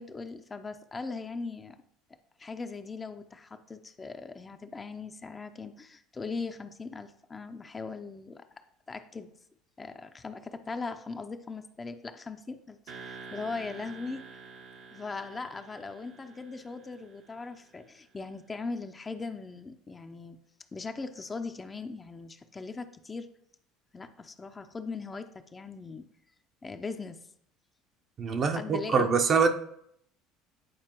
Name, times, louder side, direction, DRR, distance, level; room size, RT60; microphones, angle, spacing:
voice 1, 0.0-1.8 2.4-8.5 8.9-9.3 9.8-14.3 14.9-20.4 20.7-23.3 23.9-26.0 26.6-27.2 28.4-29.1, left 4 dB, 25° left, 7 dB, 0.6 m, -39 dB
sound 1, 12.9-17.8, right 4 dB, 65° right, 1.0 m, -48 dB
voice 2, 28.2-29.5, right 5 dB, 45° right, 5 dB, 0.8 m, -24 dB
9.3 x 4.4 x 3.0 m, 0.70 s
hypercardioid pair, 70°, 0 cm